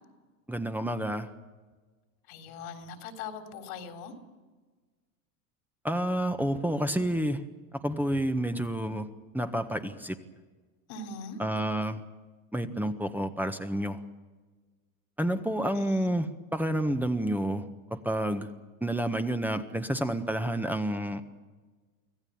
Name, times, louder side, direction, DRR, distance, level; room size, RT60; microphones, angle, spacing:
voice 1, 0.5-1.3 5.8-7.4 7.8-9.1 9.3-10.2 11.4-12.0 12.5-14.0 15.2-18.5 18.8-21.2, right 1 dB, 5° right, 7 dB, 1.4 m, -29 dB
voice 2, 2.3-4.1 10.9-11.4 15.7-16.1, left 4 dB, 75° left, 6 dB, 3.7 m, -41 dB
25.0 x 16.0 x 8.8 m, 1.3 s
hypercardioid pair, 95°, 43 cm